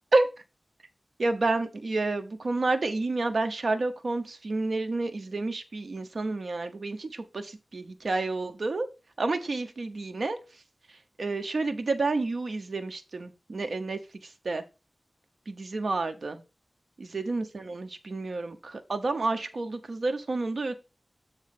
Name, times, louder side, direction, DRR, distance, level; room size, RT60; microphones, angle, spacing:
voice 1, 1.2-8.9 9.2-10.4 11.2-14.0 14.4-14.6 15.5-16.4 17.0-20.7, right 3 dB, 70° right, 7 dB, 0.8 m, -29 dB
7.4 x 3.1 x 5.9 m, 0.29 s
wide cardioid pair, 65°, 0 cm